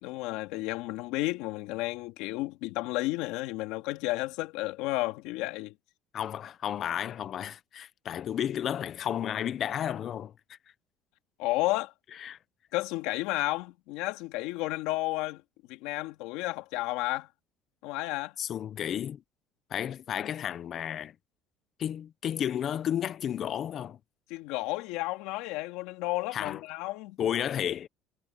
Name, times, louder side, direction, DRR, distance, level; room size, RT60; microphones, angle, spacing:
voice 1, 0.0-5.7 11.4-11.9 12.7-15.4 15.7-17.3 17.8-18.3 24.3-27.2, left 19 dB, 90° left, 2.4 m, -32 dB
voice 2, 6.1-10.3 12.2-12.4 18.4-19.2 19.7-21.1 21.8-24.0 26.3-26.6 27.2-27.9, left 10 dB, 35° left, 0.6 m, -32 dB
cardioid pair, 165°, 0 cm